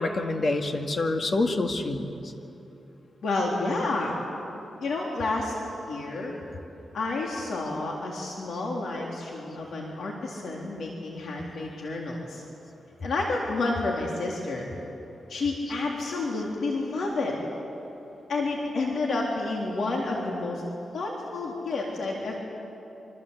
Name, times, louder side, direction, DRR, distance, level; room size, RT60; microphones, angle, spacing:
voice 1, 0.0-2.1, left 2 dB, 45° left, 5 dB, 2.0 m, -26 dB
voice 2, 3.2-4.2 4.8-5.6 5.8-6.3 6.9-12.4 13.0-14.7 15.3-17.4 18.3-20.6 20.9-22.4, left 3 dB, 70° left, -1 dB, 3.7 m, -30 dB
26.5 x 25.0 x 8.3 m, 2.9 s
wide cardioid pair, 120°, 0 cm